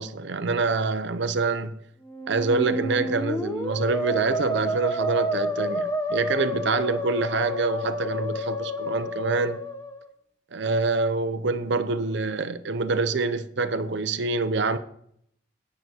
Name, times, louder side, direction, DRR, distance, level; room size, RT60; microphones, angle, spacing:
voice 1, 0.0-1.8 2.3-9.6 10.5-14.8, right 3 dB, 65° right, 0.7 m, -26 dB
Musical instrument, 2.0-10.1, equal, 15° left, 1.0 m, -30 dB
9.5 x 6.4 x 6.2 m
head